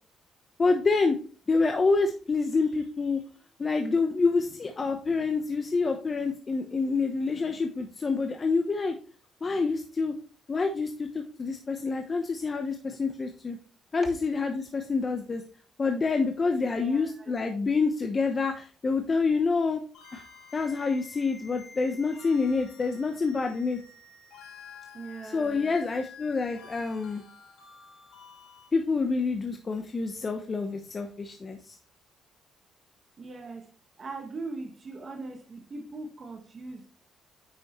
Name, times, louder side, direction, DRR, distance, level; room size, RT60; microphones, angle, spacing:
voice 1, 0.6-1.2 1.5-3.2 3.6-8.9 9.4-10.1 10.5-13.6 13.9-15.4 15.8-19.8 20.1-20.2 20.5-23.8 25.2-27.2 28.7-31.7, left 4 dB, 35° left, 1.0 m, -27 dB
voice 2, 16.6-17.3 24.9-25.7 33.2-33.7 34.0-36.9, right 3 dB, 40° right, 1.5 m, -40 dB
sound 1, 19.9-28.7, left 5 dB, 80° left, 3.0 m, -50 dB
8.9 x 6.2 x 3.1 m
cardioid pair, 90°, 0 cm